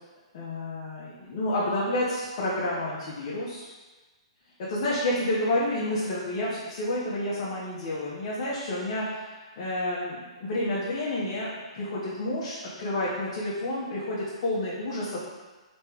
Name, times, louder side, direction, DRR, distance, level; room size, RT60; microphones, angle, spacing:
voice 1, 0.3-3.6 4.7-15.2, left 1 dB, 50° left, -7 dB, 1.0 m, -30 dB
3.3 x 3.1 x 4.5 m, 1.3 s
hypercardioid pair, 140°, 3 cm